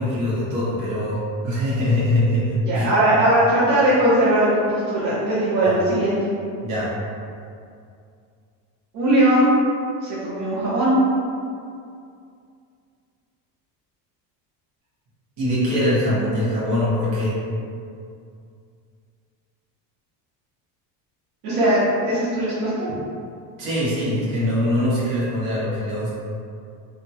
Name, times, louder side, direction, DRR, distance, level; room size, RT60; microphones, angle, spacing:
voice 1, 0.0-2.9 5.6-5.8 6.6-6.9 15.4-17.3 23.6-26.1, left 1 dB, 85° right, -9 dB, 1.4 m, -22 dB
voice 2, 2.6-6.2 8.9-9.5 10.0-10.9 21.4-22.9, right 1 dB, 70° right, -12 dB, 1.1 m, -19 dB
2.9 x 2.8 x 2.3 m, 2.4 s
supercardioid pair, 100°, 50 cm